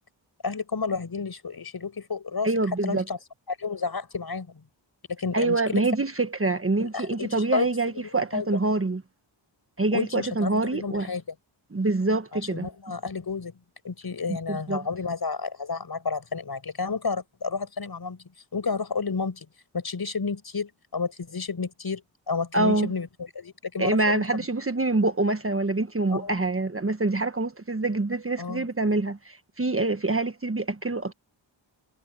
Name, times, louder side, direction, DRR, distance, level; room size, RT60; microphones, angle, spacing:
voice 1, 0.4-2.5 2.8-3.2 3.5-4.6 5.1-5.8 6.8-7.7 8.3-8.5 9.9-11.2 12.5-13.6 13.8-18.2 18.5-19.5 19.7-24.4 26.1-26.3 28.4-28.7, left 4 dB, 50° left, 5.8 m, -31 dB
voice 2, 2.4-3.0 5.3-9.0 9.8-11.1 11.7-12.7 14.3-14.8 22.5-22.9 23.8-31.1, right 2 dB, 30° right, 1.5 m, -25 dB
cardioid pair, 60°, 46 cm